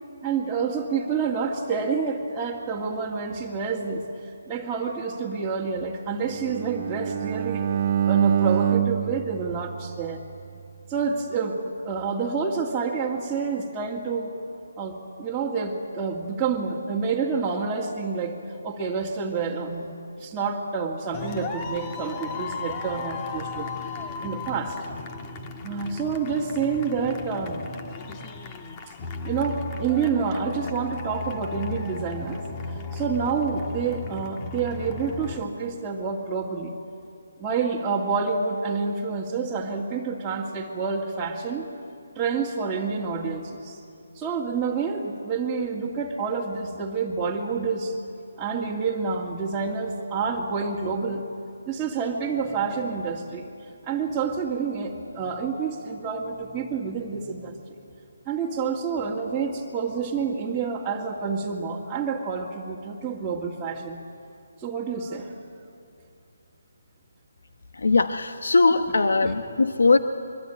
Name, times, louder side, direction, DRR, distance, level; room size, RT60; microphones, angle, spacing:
voice 1, 0.2-4.0 4.5-7.6 8.0-10.2 10.9-14.3 14.8-18.4 18.6-23.9 24.2-24.8 25.6-27.6 29.2-32.4 32.9-36.8 37.4-41.7 42.2-43.8 44.1-48.0 48.4-51.2 51.7-53.5 53.8-57.6 58.3-64.0 64.6-65.3 69.2-69.3, right 5 dB, 10° right, -7 dB, 2.2 m, -28 dB
Bowed string instrument, 6.2-10.4, right 9 dB, 35° right, 0.8 m, -26 dB
sound 1, 21.1-35.4, left 3 dB, 25° left, 1.6 m, -35 dB
voice 2, 67.7-70.0, left 3 dB, 75° left, 8 dB, 1.2 m, -20 dB
24.0 x 23.5 x 9.1 m, 2.6 s
figure-of-eight pair, 155°, 0 cm